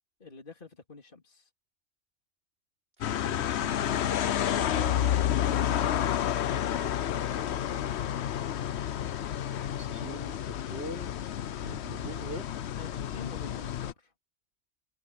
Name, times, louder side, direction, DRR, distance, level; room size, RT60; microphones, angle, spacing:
voice 1, 0.2-1.5 4.2-8.2 12.7-14.1, left 3 dB, 45° left, 3.4 m, -45 dB
sound 1, 3.0-13.9, left 10 dB, 65° left, 0.9 m, -30 dB
voice 2, 3.1-3.8 9.8-11.1 11.6-12.5, right 1 dB, 55° right, 3.7 m, -42 dB
omnidirectional pair, 1.3 m